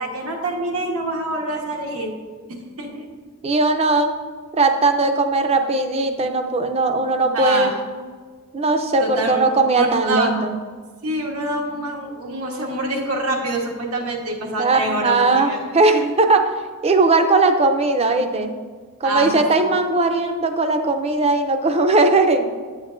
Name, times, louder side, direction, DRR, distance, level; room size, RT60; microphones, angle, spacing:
voice 1, 0.0-2.1 2.8-3.0 7.3-7.7 9.0-9.4 9.8-10.3 11.0-15.6 19.0-19.8, right 1 dB, 90° right, 0 dB, 1.3 m, -26 dB
voice 2, 3.4-4.1 4.5-7.8 8.5-10.5 14.6-16.5 16.8-18.5 19.0-22.5, right 3 dB, 30° right, 7 dB, 0.5 m, -18 dB
9.1 x 7.3 x 2.5 m, 1.5 s
head